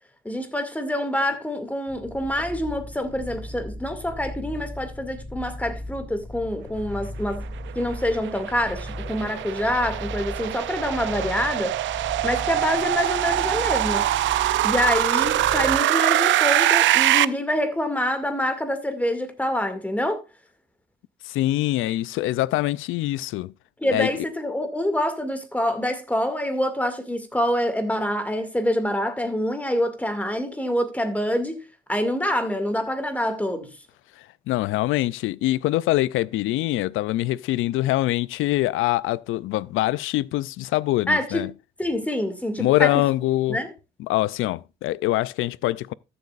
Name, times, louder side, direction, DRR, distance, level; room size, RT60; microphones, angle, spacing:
voice 1, 0.2-7.5 7.7-11.8 12.2-14.1 14.6-20.2 23.8-31.6 31.9-33.7 41.1-41.4 41.8-42.9 43.5-43.7, left 1 dB, 5° left, 2.2 m, -26 dB
sound 1, 1.9-15.8, left 1 dB, 45° left, 2.4 m, -37 dB
sound 2, 7.7-17.2, right 14 dB, 70° right, 0.5 m, -23 dB
voice 2, 21.2-23.5 23.9-24.3 34.2-41.5 42.6-43.6 44.0-45.9, left 16 dB, 85° left, 0.4 m, -24 dB
14.0 x 8.0 x 2.5 m
cardioid pair, 90°, 20 cm